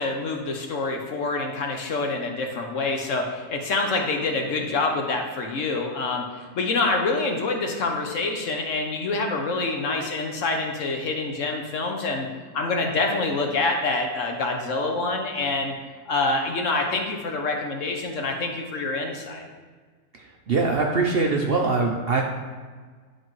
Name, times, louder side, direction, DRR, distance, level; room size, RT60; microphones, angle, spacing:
voice 1, 0.0-12.3 12.5-15.7 16.1-19.5, left 3 dB, 60° left, 2 dB, 1.1 m, -26 dB
voice 2, 20.5-22.2, right 3 dB, 55° right, 1 dB, 0.7 m, -22 dB
11.0 x 4.4 x 3.1 m, 1.5 s
omnidirectional pair, 1.6 m